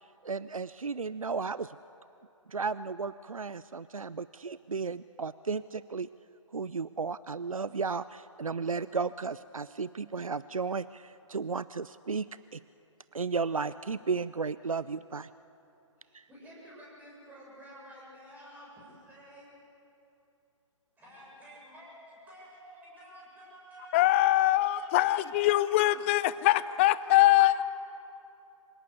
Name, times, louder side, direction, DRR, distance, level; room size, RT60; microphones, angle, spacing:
voice 1, 0.2-1.8 2.5-6.1 6.5-12.3 12.5-12.6 13.1-15.3 16.1-16.2, right 5 dB, 90° right, 0.4 m, -34 dB
voice 2, 16.0-19.5 21.0-24.3 24.8-26.1 26.4-27.7, equal, 10° right, 7.4 m, -51 dB
voice 3, 23.9-27.6, left 15 dB, 25° left, 0.5 m, -23 dB
27.0 x 17.5 x 8.3 m
figure-of-eight pair, 130°, 17 cm